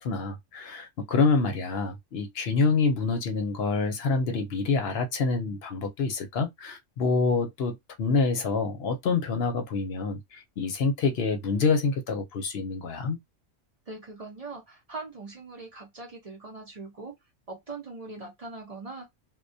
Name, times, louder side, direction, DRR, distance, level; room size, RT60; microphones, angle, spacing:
voice 1, 0.0-13.2, left 4 dB, 60° left, 0.8 m, -27 dB
voice 2, 13.9-17.1 17.5-19.1, right 3 dB, 40° right, 0.6 m, -41 dB
2.2 x 2.2 x 2.6 m
omnidirectional pair, 1.3 m